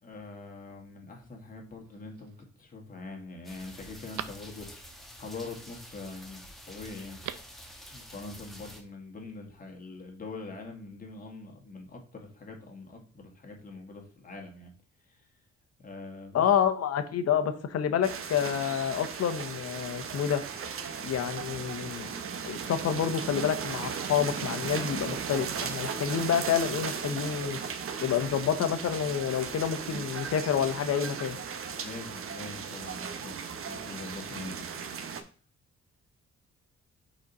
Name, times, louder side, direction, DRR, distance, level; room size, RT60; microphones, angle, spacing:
voice 1, 0.0-7.2 7.9-14.7 15.1-15.2 15.8-16.4 31.8-34.8, left 3 dB, 30° left, 1.9 m, -44 dB
Telephone, 1.9-2.4 3.0-3.1 3.5-5.0 7.0-7.6 7.9-8.0, right 11 dB, 90° right, 0.6 m, -44 dB
sound 1, 3.4-8.8, equal, ahead, 1.2 m, -48 dB
voice 2, 16.3-20.4 21.0-22.1 22.4-27.6 28.0-31.4, left 8 dB, 60° left, 1.0 m, -28 dB
sound 2, 18.0-35.2, right 6 dB, 50° right, 0.8 m, -37 dB
5.2 x 4.3 x 5.3 m
cardioid pair, 130°, 29 cm